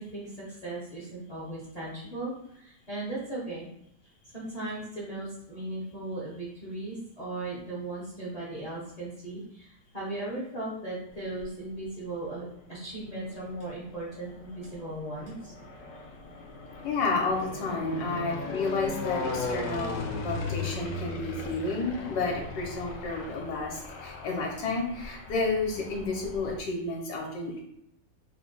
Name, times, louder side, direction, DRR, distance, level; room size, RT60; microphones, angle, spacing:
voice 1, 0.0-3.7 4.3-15.5, right 2 dB, 45° left, -7 dB, 0.4 m, -37 dB
sound 1, 11.1-11.8 12.6-26.6, left 3 dB, 90° left, 0.6 m, -38 dB
voice 2, 16.8-27.6, left 3 dB, 70° left, 0 dB, 1.1 m, -31 dB
3.4 x 2.1 x 3.7 m, 0.75 s
omnidirectional pair, 1.9 m